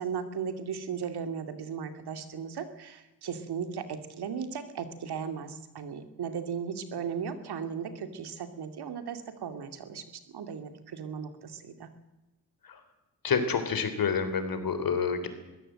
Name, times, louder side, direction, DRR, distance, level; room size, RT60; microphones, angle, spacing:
voice 1, 0.0-10.0 10.3-11.9, right 7 dB, 70° right, 9 dB, 2.5 m, -36 dB
voice 2, 13.2-15.3, left 5 dB, 55° left, 10 dB, 3.7 m, -28 dB
21.5 x 16.0 x 7.7 m, 1.0 s
cardioid pair, 65°, 40 cm